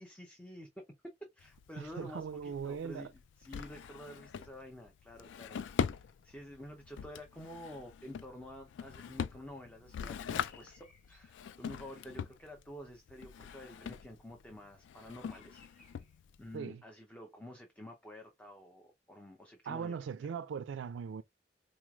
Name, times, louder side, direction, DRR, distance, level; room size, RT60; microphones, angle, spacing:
voice 1, 0.0-15.9 16.4-20.0, left 1 dB, 10° left, 0.6 m, -50 dB
Drawer open or close, 1.4-16.6, left 7 dB, 80° left, 0.3 m, -42 dB
voice 2, 1.8-3.1 16.5-16.8 19.7-21.2, right 6 dB, 85° right, 0.3 m, -39 dB
sound 1, 10.0-11.4 15.2-16.2, left 4 dB, 50° left, 1.4 m, -64 dB
4.0 x 3.1 x 2.3 m
head